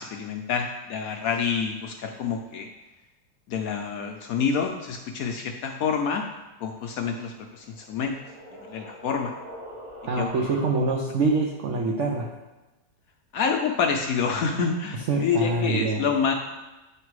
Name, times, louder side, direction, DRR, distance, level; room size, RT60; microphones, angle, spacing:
voice 1, 0.0-2.7 3.5-6.2 6.6-8.1 8.7-9.3 10.2-10.5 13.3-16.3, left 6 dB, 70° left, 3 dB, 0.9 m, -27 dB
sound 1, 7.4-11.1, equal, 25° right, 1.8 m, -43 dB
voice 2, 10.1-12.3 15.1-16.0, right 3 dB, 60° right, -1 dB, 0.8 m, -25 dB
8.5 x 3.3 x 4.6 m, 1.1 s
omnidirectional pair, 1.8 m